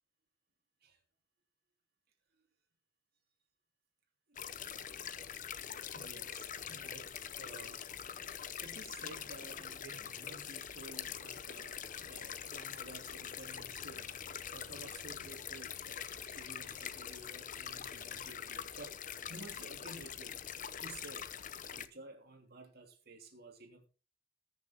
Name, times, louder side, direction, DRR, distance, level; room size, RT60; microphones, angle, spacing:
sound 1, 4.3-21.9, left 8 dB, 45° left, 0.7 m, -44 dB
voice 1, 4.3-5.1 5.9-7.9 8.6-14.2 14.5-19.0 19.3-20.4 20.8-21.3 21.8-23.9, right 2 dB, 55° right, 3.0 m, -53 dB
20.0 x 6.8 x 3.5 m
head